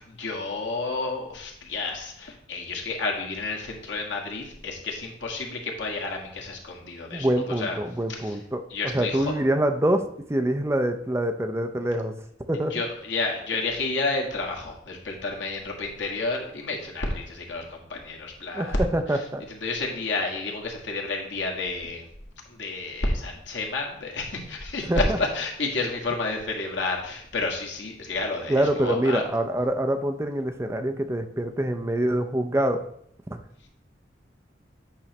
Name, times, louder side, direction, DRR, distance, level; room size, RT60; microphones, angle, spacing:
voice 1, 0.0-7.8 8.1-8.4 8.7-9.3 12.7-22.0 22.5-29.2, left 3 dB, 85° left, 0 dB, 1.6 m, -30 dB
voice 2, 7.1-8.6 8.9-12.1 12.5-12.7 18.5-19.4 24.9-25.2 28.5-32.8 33.3-33.4, right 1 dB, 15° right, 6 dB, 0.5 m, -25 dB
8.6 x 3.2 x 5.9 m, 0.68 s
head